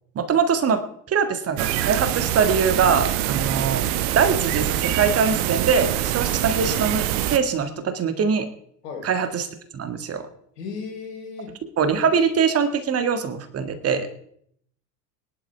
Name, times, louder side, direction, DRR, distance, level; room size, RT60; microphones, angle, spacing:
voice 1, 0.2-0.8 1.1-3.8 4.2-8.5 9.0-9.5 9.7-10.2 11.8-14.1, right 6 dB, 30° right, 9 dB, 1.8 m, -22 dB
sound 1, 1.6-7.4, right 13 dB, 50° right, 1.1 m, -24 dB
voice 2, 10.6-11.5, left 5 dB, 70° left, 1 dB, 4.0 m, -35 dB
23.5 x 11.0 x 3.5 m, 0.67 s
figure-of-eight pair, 75°, 49 cm